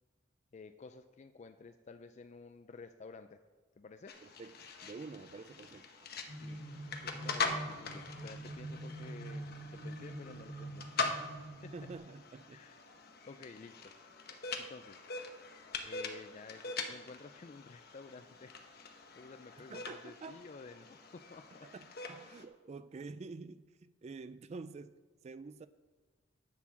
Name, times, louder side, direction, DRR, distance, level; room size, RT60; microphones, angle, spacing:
voice 1, 0.5-3.4 3.8-4.2 6.4-11.7 12.5-12.8 13.3-13.9 14.6-15.0 15.8-18.6 18.9-21.7, left 4 dB, 40° left, 10 dB, 0.4 m, -52 dB
sound 1, 4.1-22.4, left 4 dB, 55° left, 0.9 m, -43 dB
voice 2, 4.2-4.5 4.8-6.1 11.7-12.6 19.7-20.4 21.6-24.9 25.2-25.7, right 4 dB, 35° right, 14 dB, 0.3 m, -48 dB
sound 2, 6.3-12.0, right 1 dB, 55° right, 1.7 m, -45 dB
10.5 x 4.8 x 7.2 m, 1.3 s
head